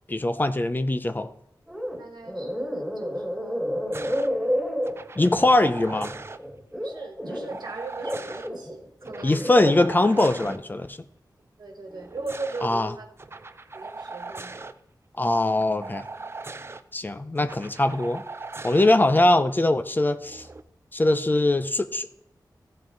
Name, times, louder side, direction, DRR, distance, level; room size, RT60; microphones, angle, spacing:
voice 1, 0.1-1.3 5.2-6.1 9.2-11.0 12.6-12.9 15.2-16.1 16.9-18.2 18.6-20.5 20.9-22.2, left 2 dB, 25° left, 10 dB, 0.6 m, -22 dB
sound 1, 1.7-7.6 8.0-9.7 10.2-10.5, equal, 5° right, 2.3 m, -30 dB
voice 2, 2.0-3.6 4.0-4.5 6.8-9.9 11.6-13.1 13.7-14.7, right 3 dB, 70° right, 3 dB, 1.5 m, -38 dB
sound 2, 3.9-4.3 4.8-6.4 7.5-8.5 9.0-10.6 11.9-12.7 13.2-14.7 15.8-16.8 17.4-18.9 20.2-20.6, right 3 dB, 35° right, 0.5 m, -39 dB
14.0 x 5.6 x 3.8 m, 0.78 s
wide cardioid pair, 100°, 8 cm